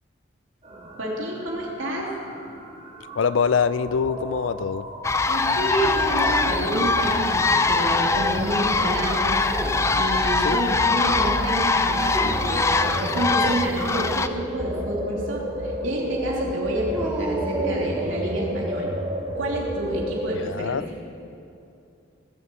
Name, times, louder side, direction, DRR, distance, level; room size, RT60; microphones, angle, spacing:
sound 1, 0.6-20.4, equal, 35° right, 4.5 m, -33 dB
voice 1, 1.0-2.1 5.3-18.9 19.3-20.8, right 1 dB, 90° right, -3 dB, 3.2 m, -29 dB
voice 2, 3.2-4.9 10.4-10.6 20.4-20.9, left 6 dB, 80° left, 16 dB, 0.4 m, -24 dB
sound 2, 5.0-14.3, left 3 dB, 15° left, 0.4 m, -22 dB
Dog, 6.1-7.2 7.6-8.3 9.3-10.1 12.0-12.7 16.9-18.3, right 1 dB, 10° right, 2.8 m, -33 dB
18.5 x 7.6 x 7.6 m, 2.6 s
head